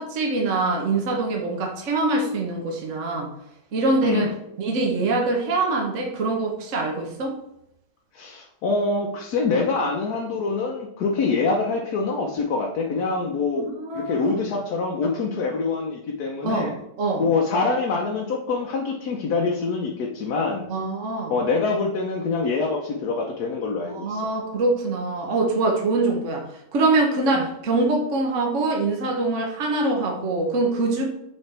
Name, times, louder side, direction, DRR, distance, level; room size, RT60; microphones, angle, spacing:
voice 1, 0.0-3.3 3.7-4.3 4.6-7.4 13.6-14.4 16.4-16.7 17.0-17.2 20.7-21.3 23.9-26.4 26.7-31.1, right 2 dB, 50° right, 0 dB, 1.2 m, -24 dB
voice 2, 8.1-13.7 13.9-16.7 17.2-20.7 21.3-24.2 27.3-27.5, left 4 dB, 65° left, 0 dB, 1.2 m, -25 dB
7.4 x 3.8 x 3.3 m, 0.80 s
omnidirectional pair, 1.9 m